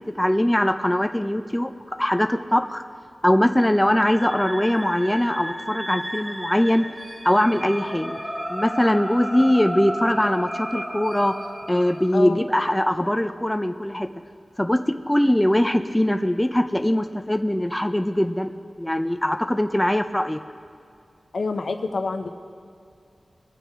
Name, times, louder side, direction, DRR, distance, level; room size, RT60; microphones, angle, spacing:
voice 1, 0.0-2.8 3.2-6.8 7.2-8.2 8.5-11.3 11.7-14.1 14.6-18.5 18.8-20.4, left 1 dB, 10° left, 7 dB, 0.5 m, -21 dB
sound 1, 3.9-12.1, equal, 15° right, 1.3 m, -33 dB
voice 2, 21.3-22.3, left 3 dB, 75° left, 6 dB, 0.8 m, -27 dB
21.5 x 8.8 x 3.7 m, 2.4 s
wide cardioid pair, 75°, 0 cm